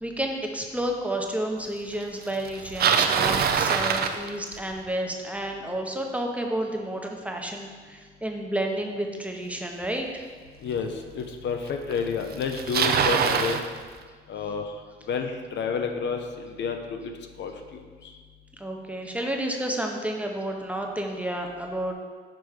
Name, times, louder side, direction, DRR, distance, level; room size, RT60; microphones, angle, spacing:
voice 1, 0.0-10.2 18.6-21.9, right 1 dB, 5° right, 1 dB, 0.7 m, -31 dB
Bicycle, 2.4-4.8 9.8-9.9 10.8-10.9 11.9-12.0 12.2-13.7, right 7 dB, 50° right, 0.4 m, -23 dB
voice 2, 10.6-13.6 14.3-14.7 15.1-17.1 17.4-17.8, left 6 dB, 65° left, 5 dB, 0.6 m, -30 dB
5.9 x 3.5 x 4.8 m, 1.5 s
cardioid pair, 90°, 20 cm